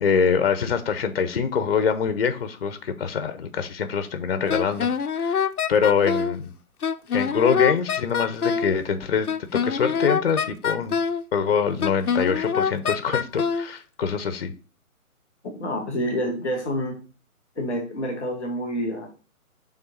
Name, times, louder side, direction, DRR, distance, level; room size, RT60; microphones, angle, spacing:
voice 1, 0.0-4.9 5.2-6.5 7.1-9.3 9.5-11.0 11.3-14.5, left 6 dB, 40° left, 10 dB, 0.8 m, -24 dB
Wind instrument woodwind instrument, 4.5-6.4 6.8-8.7 9.3-11.2 11.8-13.7, left 6 dB, 85° left, 0.7 m, -25 dB
voice 2, 15.6-17.0 17.5-19.1, equal, 5° right, -15 dB, 0.5 m, -28 dB
6.3 x 3.7 x 5.4 m, 0.35 s
figure-of-eight pair, 145°, 44 cm